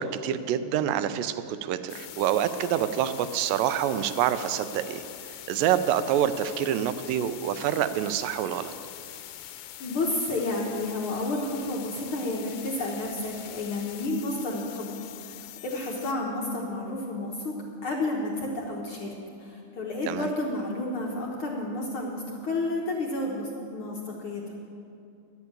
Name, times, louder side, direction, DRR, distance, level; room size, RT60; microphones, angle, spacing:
voice 1, 0.0-5.0 5.5-8.7 20.1-20.3, right 10 dB, 80° right, 12 dB, 2.2 m, -27 dB
sound 1, 1.9-16.1, left 12 dB, 80° left, 2.0 m, -43 dB
voice 2, 9.8-17.5 17.8-19.1 19.4-24.4, left 2 dB, 65° left, -1 dB, 1.3 m, -31 dB
12.0 x 8.2 x 8.7 m, 2.5 s
omnidirectional pair, 4.0 m